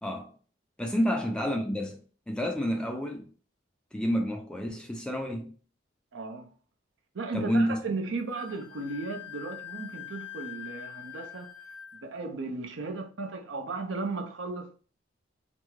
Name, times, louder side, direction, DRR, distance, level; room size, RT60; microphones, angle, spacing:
voice 1, 0.0-0.3 0.8-2.0 2.3-3.3 3.9-5.5 7.3-7.8, equal, 5° left, 0.3 m, -29 dB
voice 2, 6.1-6.5 7.1-11.5 11.9-14.7, right 3 dB, 75° right, 0.6 m, -35 dB
Wind instrument woodwind instrument, 8.3-12.0, left 11 dB, 75° left, 0.5 m, -44 dB
3.4 x 2.0 x 3.1 m
head